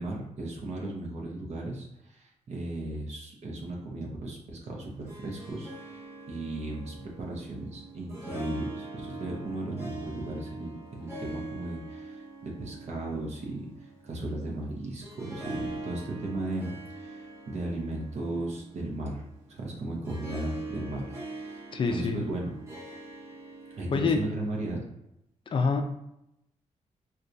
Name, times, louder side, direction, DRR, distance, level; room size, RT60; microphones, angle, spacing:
voice 1, 0.0-6.0 6.3-22.5 23.8-24.8, right 2 dB, 55° right, -1 dB, 0.7 m, -36 dB
Harp, 4.8-24.7, right 2 dB, 20° right, 0.8 m, -43 dB
voice 2, 21.7-22.2 23.9-24.2 25.5-25.8, left 4 dB, 40° left, 5 dB, 0.4 m, -26 dB
4.3 x 2.3 x 2.6 m, 0.81 s
wide cardioid pair, 175°, 13 cm